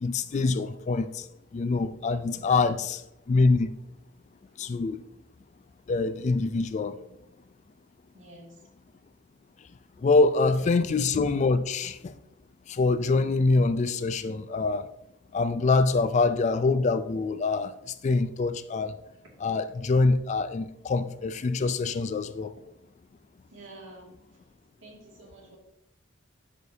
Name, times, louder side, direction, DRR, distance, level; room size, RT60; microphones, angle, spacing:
voice 1, 0.0-1.2 1.5-3.0 3.3-3.7 4.6-5.0 5.9-7.0 10.0-12.1 12.7-14.9 15.3-17.7 18.0-18.9 19.4-22.5, left 3 dB, 35° left, 0.3 m, -25 dB
voice 2, 2.1-2.5 8.1-8.6 10.6-10.7 23.5-24.1 24.8-25.6, right 1 dB, 75° right, 2.2 m, -49 dB
11.0 x 5.0 x 2.7 m
head